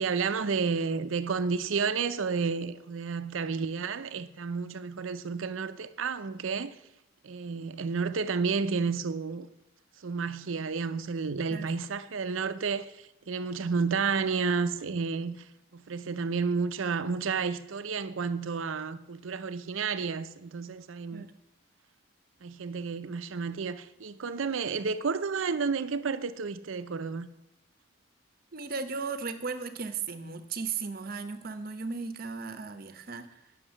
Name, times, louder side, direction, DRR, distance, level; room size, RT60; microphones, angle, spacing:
voice 1, 0.0-6.8 7.2-9.5 10.0-15.4 15.7-21.3 22.4-27.3, right 5 dB, 75° right, 0.6 m, -31 dB
voice 2, 28.5-33.3, right 5 dB, 45° right, 0.8 m, -36 dB
9.9 x 6.5 x 6.3 m
head